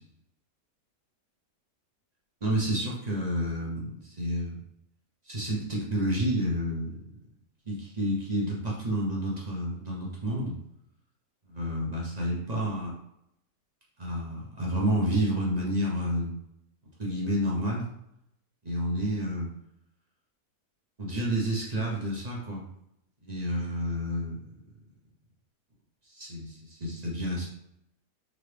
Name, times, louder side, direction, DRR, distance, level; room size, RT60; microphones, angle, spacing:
voice 1, 2.4-4.6 5.2-7.0 7.7-10.6 11.5-12.9 14.0-16.4 17.0-17.9 18.6-19.5 21.0-22.6 23.2-24.4 26.0-27.5, equal, 30° right, -4 dB, 0.8 m, -30 dB
3.9 x 3.3 x 3.3 m, 0.77 s
omnidirectional pair, 1.8 m